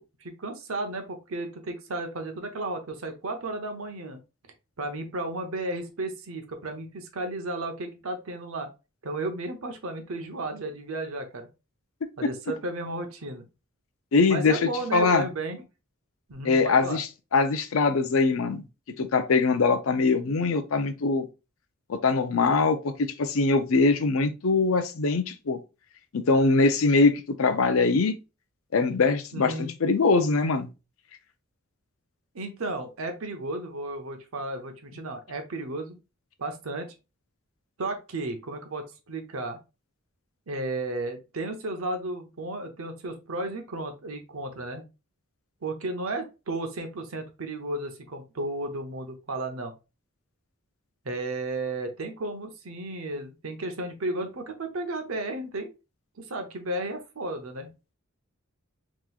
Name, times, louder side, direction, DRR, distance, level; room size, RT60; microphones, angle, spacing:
voice 1, 0.0-4.2 4.8-8.7 9.0-11.5 12.2-13.4 14.3-15.6 16.3-17.0 29.3-29.7 32.3-36.0 36.4-36.9 37.8-39.6 40.5-44.8 45.6-49.7 51.0-55.7 56.2-57.7, right 2 dB, 80° right, 0.8 m, -33 dB
voice 2, 14.1-15.2 16.4-18.6 19.0-21.3 21.9-22.9 23.2-25.6 26.1-28.1 28.7-30.7, left 4 dB, 75° left, 0.5 m, -22 dB
3.7 x 3.0 x 2.3 m
head